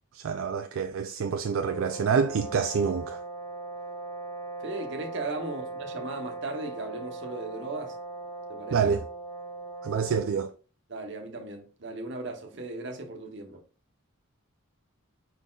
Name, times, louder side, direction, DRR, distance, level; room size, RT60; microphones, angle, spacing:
voice 1, 0.1-3.2 8.7-9.0 9.8-10.5, right 6 dB, 70° right, 0.4 m, -27 dB
sound 1, 1.4-10.4, right 3 dB, 20° left, 0.7 m, -39 dB
voice 2, 4.6-7.9 8.5-8.8 10.9-13.6, right 2 dB, 55° right, 1.0 m, -37 dB
5.0 x 4.1 x 2.4 m
head